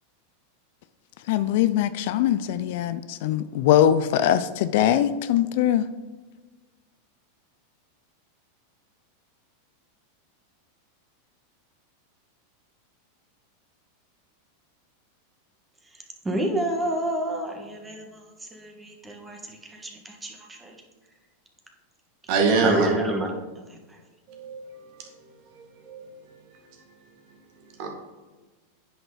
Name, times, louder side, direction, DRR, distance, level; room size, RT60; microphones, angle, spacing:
voice 1, 1.3-5.9, left 11 dB, 65° left, 0.4 m, -22 dB
voice 2, 15.8-20.8 22.6-23.3 23.7-24.0, right 1 dB, 15° right, 1.7 m, -30 dB
voice 3, 22.3-22.9 24.3-25.1 25.6-26.1 27.8-27.9, right 4 dB, 55° right, 1.9 m, -25 dB
9.8 x 5.4 x 3.9 m
hypercardioid pair, 100°, 0 cm